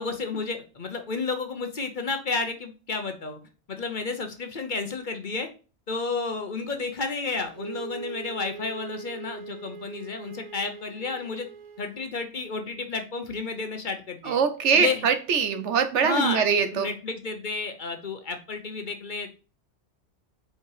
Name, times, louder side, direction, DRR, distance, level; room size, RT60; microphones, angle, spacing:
voice 1, 0.0-3.4 3.7-5.5 5.9-11.5 11.8-14.4 14.7-15.1 16.0-16.4 16.7-19.4, left 4 dB, 45° left, 1.0 m, -31 dB
Wind instrument woodwind instrument, 7.5-12.0, right 5 dB, 30° right, 0.9 m, -41 dB
voice 2, 14.3-16.9, right 6 dB, 75° right, 1.1 m, -23 dB
5.1 x 4.9 x 4.9 m
omnidirectional pair, 1.2 m